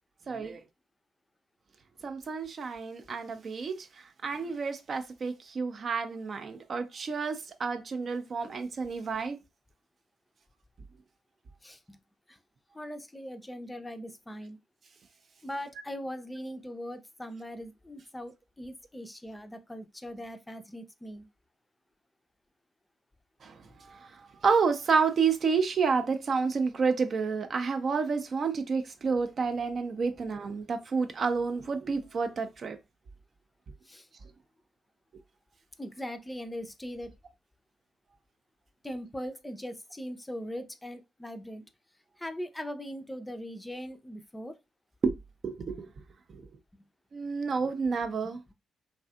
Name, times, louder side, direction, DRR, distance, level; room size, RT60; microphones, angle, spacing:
voice 1, 0.3-0.6 2.0-3.9 4.2-9.4 23.4-32.8 45.0-45.1 45.4-45.9 46.3-46.4 47.1-48.4, right 5 dB, 45° right, 0.4 m, -30 dB
voice 2, 11.6-12.0 12.3-12.4 12.7-14.6 15.4-21.3 33.9-34.1 35.8-37.1 38.8-41.6 42.2-44.6 48.2-48.5, equal, 15° left, 0.4 m, -40 dB
2.6 x 2.4 x 2.3 m
figure-of-eight pair, 40°, 0 cm